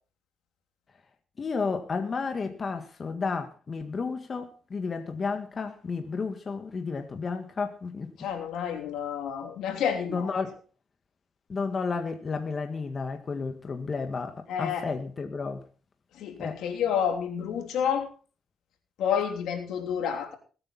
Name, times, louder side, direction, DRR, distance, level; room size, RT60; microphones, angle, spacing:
voice 1, 1.4-8.3 10.1-10.6 11.5-15.6 16.4-16.6, left 4 dB, 40° left, 1.8 m, -32 dB
voice 2, 8.2-10.3 14.5-14.9 16.1-18.1 19.0-20.4, left 8 dB, 80° left, 3.1 m, -29 dB
21.0 x 8.9 x 4.2 m
cardioid pair, 90°, 0 cm